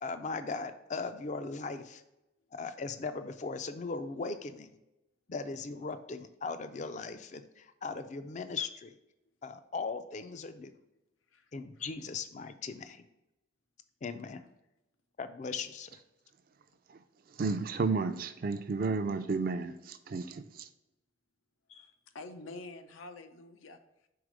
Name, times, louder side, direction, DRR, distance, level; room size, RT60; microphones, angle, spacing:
voice 1, 0.0-2.0 2.5-4.7 5.3-9.0 9.4-10.7 11.5-13.0 14.0-14.4 15.2-16.0, left 4 dB, 35° left, 10 dB, 0.3 m, -38 dB
voice 2, 17.4-20.7, right 4 dB, 45° right, 11 dB, 0.4 m, -32 dB
voice 3, 21.7-24.1, left 2 dB, 90° left, 8 dB, 0.6 m, -48 dB
4.8 x 4.0 x 5.0 m, 0.94 s
head